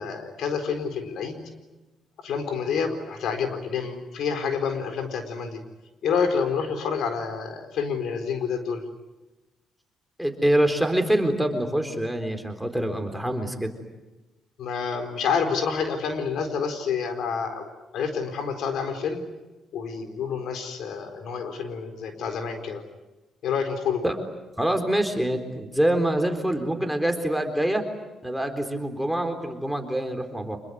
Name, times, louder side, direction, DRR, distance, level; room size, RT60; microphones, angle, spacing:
voice 1, 0.0-1.4 2.2-5.6 6.0-8.8 14.6-19.2 19.7-22.8 23.4-24.0, left 6 dB, 75° left, 7 dB, 4.2 m, -28 dB
voice 2, 10.2-13.7 24.0-24.2 24.6-27.8 28.2-30.6, right 1 dB, ahead, 5 dB, 3.9 m, -25 dB
26.0 x 21.5 x 9.6 m, 1.1 s
cardioid pair, 90°, 0 cm